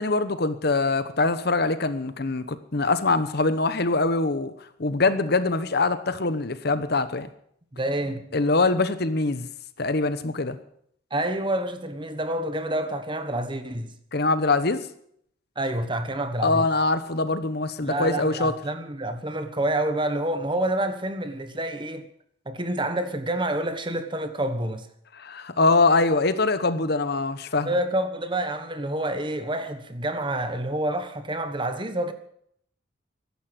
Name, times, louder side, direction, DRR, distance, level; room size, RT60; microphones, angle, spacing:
voice 1, 0.0-4.5 4.8-7.3 8.3-9.5 9.8-10.6 14.1-14.8 16.4-18.5 25.2-27.7, left 3 dB, 55° left, 1.0 m, -23 dB
voice 2, 7.7-8.3 11.1-13.9 15.6-16.7 17.8-22.1 22.4-24.9 27.6-32.1, right 1 dB, 25° right, 1.3 m, -28 dB
15.0 x 11.5 x 7.9 m
head